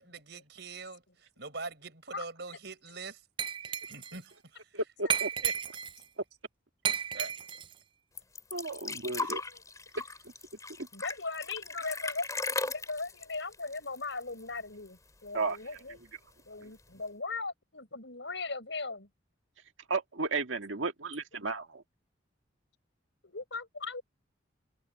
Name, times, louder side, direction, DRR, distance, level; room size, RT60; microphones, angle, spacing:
voice 1, 0.0-3.2 3.6-4.8 5.4-5.5 7.1-7.3 9.2-9.4 9.9-10.0, right 3 dB, 60° right, 6.1 m, -44 dB
Glass, 3.4-4.2 5.1-6.0 6.8-7.7, right 8 dB, 25° right, 0.4 m, -33 dB
voice 2, 4.7-5.3 8.5-9.4 15.3-15.8 16.6-16.7 19.9-21.8, right 3 dB, 90° right, 1.8 m, -34 dB
sound 1, 8.2-14.6 14.9-15.0 15.3-16.0 16.8-16.9, left 3 dB, 15° left, 3.2 m, -38 dB
voice 3, 10.9-16.0 16.5-19.1 23.2-24.0, left 3 dB, 70° left, 5.6 m, -38 dB
head